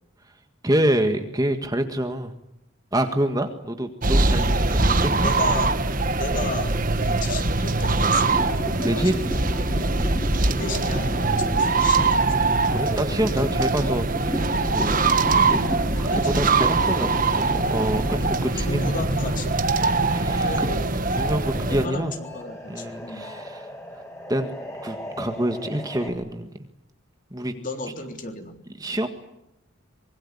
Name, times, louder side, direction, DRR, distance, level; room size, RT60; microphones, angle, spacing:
voice 1, 0.6-2.3 2.9-5.3 7.0-7.2 8.8-9.2 12.7-15.0 16.0-18.8 19.8-20.7 21.2-22.1 22.7-23.7 24.3-24.5 24.8-26.5 27.3-27.5 28.8-29.1, right 1 dB, 15° right, 6 dB, 1.7 m, -26 dB
sound 1, 4.0-21.9, right 3 dB, 40° right, 1.5 m, -22 dB
voice 2, 4.3-4.7 5.2-5.7 6.2-8.6 8.9-9.1 9.4-9.5 10.6-12.4 16.1-16.4 18.6-19.6 20.4-20.8 21.7-23.3 27.4-28.6, left 2 dB, 40° left, 5 dB, 3.6 m, -33 dB
sound 2, 8.1-19.4 19.7-26.1, equal, 15° left, 5.5 m, -35 dB
25.0 x 23.0 x 9.9 m, 0.85 s
head